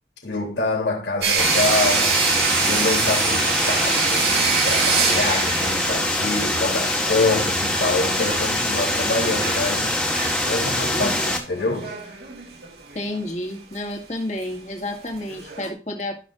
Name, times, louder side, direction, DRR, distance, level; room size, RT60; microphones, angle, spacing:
voice 1, 0.2-2.2 2.6-10.0 10.4-11.1 11.5-12.0, left 3 dB, 85° left, 3.3 m, -26 dB
sound 1, 1.2-6.6 7.0-7.1 7.6-8.5 8.9-9.7 10.1-10.5 11.0-13.3 13.7-13.8 14.4-14.5 15.1-15.7, right 5 dB, 60° right, 1.9 m, -25 dB
sound 2, 1.4-11.4, left 1 dB, 5° left, 1.5 m, -23 dB
voice 2, 10.9-11.3 12.9-16.2, left 1 dB, 40° left, 2.1 m, -30 dB
15.0 x 6.3 x 2.6 m
head